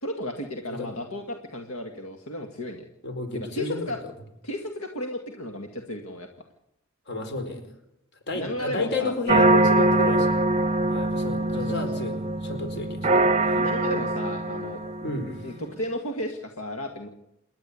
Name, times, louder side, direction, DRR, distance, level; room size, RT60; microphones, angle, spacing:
voice 1, 0.0-2.8 3.3-4.0 4.4-6.3 8.3-9.1 11.5-11.8 13.5-14.8 15.4-17.1, left 1 dB, 75° left, 5 dB, 2.0 m, -34 dB
voice 2, 3.0-3.9 7.1-7.6 8.3-10.4 10.9-13.2 13.4-13.5 15.0-15.5, left 2 dB, 50° left, 6 dB, 4.6 m, -31 dB
sound 1, 9.3-15.4, right 2 dB, 30° right, 0.8 m, -23 dB
28.0 x 11.5 x 8.4 m, 0.83 s
head